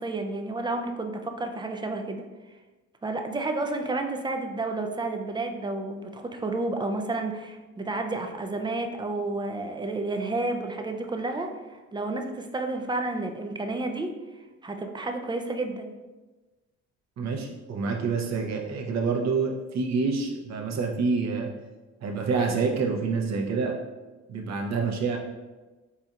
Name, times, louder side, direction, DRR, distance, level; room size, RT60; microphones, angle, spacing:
voice 1, 0.0-2.2 3.0-14.1 14.6-15.9, right 2 dB, 15° right, 4 dB, 0.4 m, -31 dB
voice 2, 17.2-21.5 22.0-23.8 24.3-25.2, right 4 dB, 60° right, 1 dB, 0.8 m, -27 dB
4.3 x 4.2 x 2.5 m, 1.2 s
cardioid pair, 90°, 30 cm